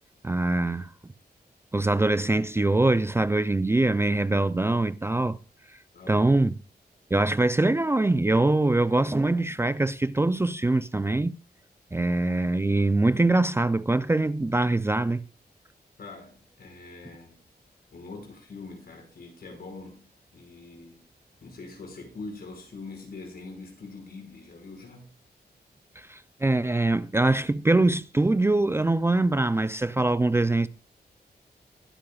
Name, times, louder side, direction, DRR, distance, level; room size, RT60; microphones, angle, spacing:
voice 1, 0.2-0.9 1.7-5.4 6.1-6.5 7.1-11.3 11.9-15.2 26.0-30.7, right 2 dB, 15° right, 0.5 m, -23 dB
voice 2, 5.9-6.4 16.0-17.4 17.9-21.0 21.4-25.1, left 3 dB, 70° left, 5.5 m, -43 dB
21.0 x 9.8 x 2.4 m
wide cardioid pair, 110°, 17 cm